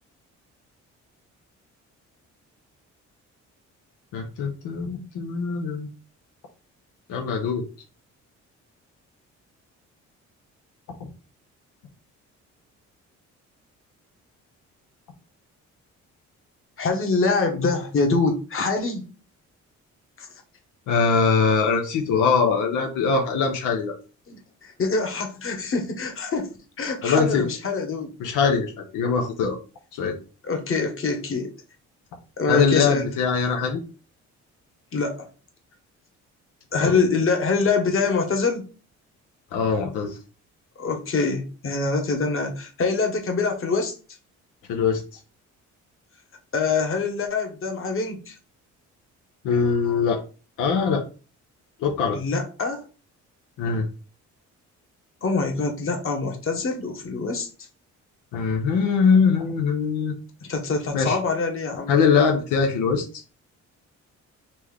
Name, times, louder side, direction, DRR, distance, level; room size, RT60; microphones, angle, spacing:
voice 1, 4.1-5.9 7.1-7.6 11.0-11.1 20.9-24.0 27.0-27.4 28.2-29.6 29.9-30.2 32.5-33.8 36.8-37.0 39.5-40.2 44.7-45.0 49.4-50.2 50.6-51.0 51.8-52.2 53.6-53.9 58.3-60.1 60.9-61.2 61.9-63.0, left 5 dB, 90° left, 2 dB, 0.9 m, -22 dB
voice 2, 16.8-19.1 20.2-20.3 24.3-28.1 30.4-31.5 32.4-33.1 34.9-35.3 36.7-38.7 40.8-44.0 46.5-48.3 52.1-52.9 55.2-57.5 60.4-61.9, left 4 dB, 45° left, 3 dB, 1.4 m, -25 dB
4.3 x 3.2 x 3.5 m, 0.34 s
cardioid pair, 90°, 30 cm